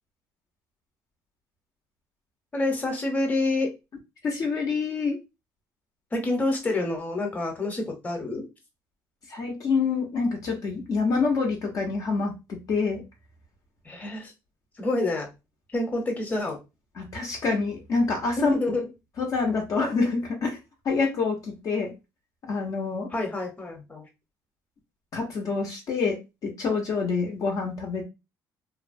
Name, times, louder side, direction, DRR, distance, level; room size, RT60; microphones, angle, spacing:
voice 1, 2.5-3.7 6.1-8.5 13.8-14.3 14.8-15.3 15.7-16.6 18.4-18.9 23.1-24.0, left 2 dB, 20° left, 2 dB, 0.9 m, -27 dB
voice 2, 4.2-5.2 9.3-13.0 17.0-18.5 19.2-20.6 20.8-21.9 22.5-23.1 25.1-28.0, left 4 dB, 50° left, 1 dB, 0.8 m, -27 dB
2.7 x 2.1 x 2.6 m, 0.25 s
cardioid pair, 110°, 8 cm